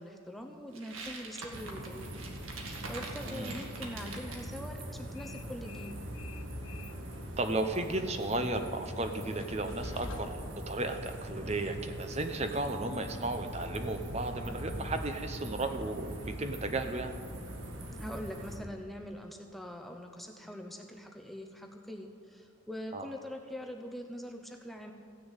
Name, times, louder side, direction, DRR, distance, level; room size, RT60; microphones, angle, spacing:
voice 1, 0.0-2.1 2.9-5.9 18.0-24.9, equal, ahead, 2 dB, 0.7 m, -43 dB
sound 1, 0.7-4.5, right 3 dB, 90° right, 1.9 m, -44 dB
sound 2, 1.5-18.6, equal, 65° right, 1.8 m, -42 dB
voice 2, 3.3-3.6 7.4-17.1 22.9-23.1, right 2 dB, 30° right, 7 dB, 0.8 m, -34 dB
Train, 4.1-12.4, left 2 dB, 70° left, 1.2 m, -50 dB
15.5 x 6.8 x 9.0 m, 2.2 s
head